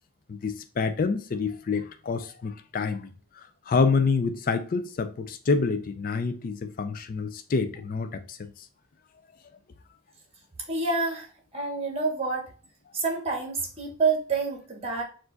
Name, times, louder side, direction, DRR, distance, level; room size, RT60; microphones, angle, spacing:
voice 1, 0.3-3.1 3.4-8.5, left 4 dB, 40° left, 0.3 m, -27 dB
voice 2, 10.7-11.3 11.5-12.5 12.9-15.0, right 4 dB, 25° right, 1.1 m, -27 dB
4.7 x 2.5 x 3.8 m
head